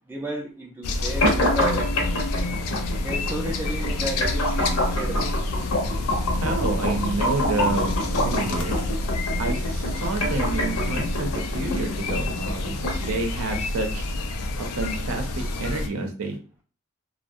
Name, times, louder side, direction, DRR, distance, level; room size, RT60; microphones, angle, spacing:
voice 1, 0.1-2.0 3.0-5.3, right 1 dB, 10° right, -1 dB, 0.3 m, -33 dB
sound 1, 0.8-15.9, left 2 dB, 90° left, 0.4 m, -28 dB
sound 2, 1.2-13.2, left 1 dB, 70° left, 0.8 m, -27 dB
sound 3, 5.8-11.0, equal, 35° right, 0.7 m, -40 dB
voice 2, 6.4-8.8 9.4-14.0 14.6-16.4, right 2 dB, 75° right, 3 dB, 0.6 m, -29 dB
2.6 x 2.0 x 2.3 m, 0.38 s
head